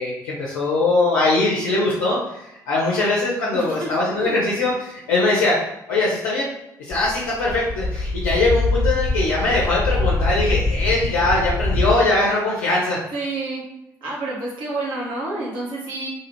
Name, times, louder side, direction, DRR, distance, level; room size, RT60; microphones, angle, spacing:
voice 1, 0.0-5.6 5.9-6.5 6.8-13.0, left 2 dB, 70° left, -6 dB, 0.6 m, -21 dB
voice 2, 3.5-3.9 4.2-4.4 13.1-13.6 14.0-16.1, right 2 dB, 60° right, -5 dB, 1.0 m, -28 dB
sound 1, 6.9-11.9, left 2 dB, 10° left, 0.6 m, -23 dB
2.7 x 2.4 x 2.9 m, 0.87 s
figure-of-eight pair, 40°, 9 cm